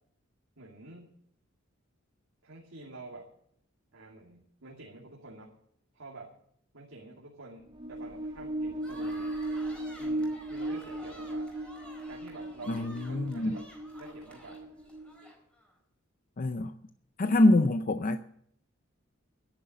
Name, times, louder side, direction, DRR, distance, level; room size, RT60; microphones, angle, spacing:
voice 1, 0.6-1.1 2.4-3.3 3.9-5.6 5.9-6.3 6.7-9.4 10.0-11.5 12.1-13.7 14.0-14.7 17.3-17.5, right 2 dB, 80° right, 2.5 m, -48 dB
sound 1, 7.6-15.3, right 1 dB, 25° right, 1.5 m, -36 dB
sound 2, 8.8-15.7, equal, 5° left, 4.2 m, -52 dB
voice 2, 12.7-13.6 16.4-16.7 17.2-18.2, left 2 dB, 40° left, 0.6 m, -25 dB
11.0 x 10.5 x 7.7 m
head